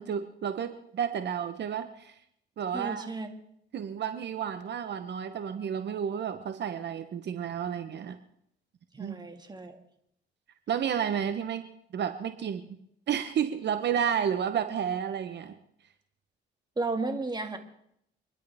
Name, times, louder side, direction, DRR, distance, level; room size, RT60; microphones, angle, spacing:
voice 1, 0.0-2.1 2.6-3.1 3.7-8.2 9.0-9.2 10.7-11.6 11.9-12.6 13.1-15.5, right 8 dB, 60° right, 9 dB, 1.0 m, -31 dB
voice 2, 2.7-3.3 8.9-9.8 16.8-17.6, right 3 dB, 20° right, 5 dB, 2.0 m, -33 dB
28.5 x 11.5 x 3.5 m, 0.73 s
cardioid pair, 90°, 20 cm